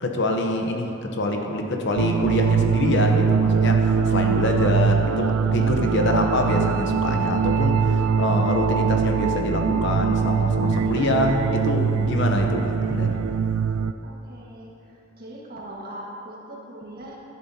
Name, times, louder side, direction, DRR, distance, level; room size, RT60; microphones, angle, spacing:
voice 1, 0.0-13.2, left 1 dB, 60° left, 3 dB, 0.8 m, -25 dB
sound 1, 2.0-13.9, right 6 dB, 85° right, 0.4 m, -22 dB
voice 2, 14.0-17.2, right 1 dB, 45° right, -4 dB, 1.7 m, -40 dB
11.5 x 10.5 x 2.8 m, 2.9 s
head